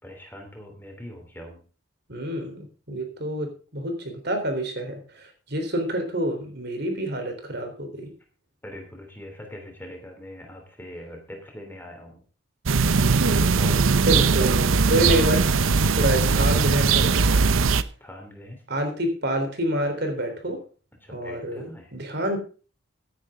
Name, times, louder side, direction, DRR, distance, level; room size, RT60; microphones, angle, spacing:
voice 1, 0.0-1.6 8.6-12.2 13.1-13.9 17.8-18.6 21.0-21.9, left 1 dB, 10° left, 3 dB, 3.0 m, -42 dB
voice 2, 2.1-3.5 3.7-8.1 14.1-15.5 16.0-17.1 18.7-20.6 21.1-22.4, right 1 dB, 50° right, 5 dB, 3.7 m, -27 dB
sound 1, 12.7-17.8, right 4 dB, 75° right, 0.7 m, -20 dB
16.0 x 9.8 x 3.7 m, 0.37 s
head